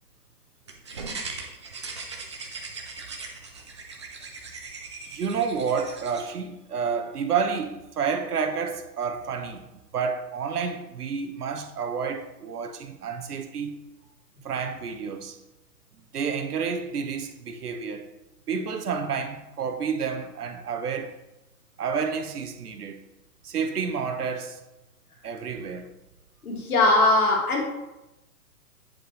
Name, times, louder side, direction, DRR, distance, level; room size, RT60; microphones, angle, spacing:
sound 1, 0.7-6.2, right 4 dB, 20° right, 0.4 m, -39 dB
voice 1, 5.1-9.6 9.9-13.8 14.4-15.4 16.1-18.1 18.5-21.1 21.8-23.0 23.4-24.6 25.2-26.0, right 6 dB, 70° right, 1.1 m, -30 dB
voice 2, 26.4-27.6, left 2 dB, 65° left, 2.5 m, -20 dB
8.8 x 5.1 x 3.2 m
hypercardioid pair, 135°, 47 cm